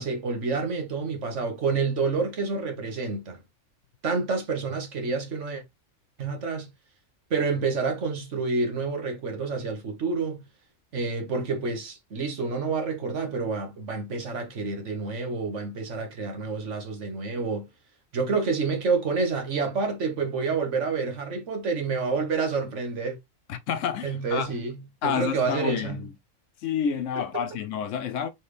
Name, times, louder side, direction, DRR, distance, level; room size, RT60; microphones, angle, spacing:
voice 1, 0.0-3.4 4.0-5.6 6.2-6.7 7.3-10.4 10.9-17.7 18.1-23.2 24.0-26.1 27.3-27.4, right 4 dB, 65° right, 1.5 m, -28 dB
voice 2, 23.5-24.5 25.0-26.1 26.6-28.3, left 7 dB, 70° left, 0.9 m, -29 dB
4.2 x 3.3 x 3.2 m
omnidirectional pair, 1.4 m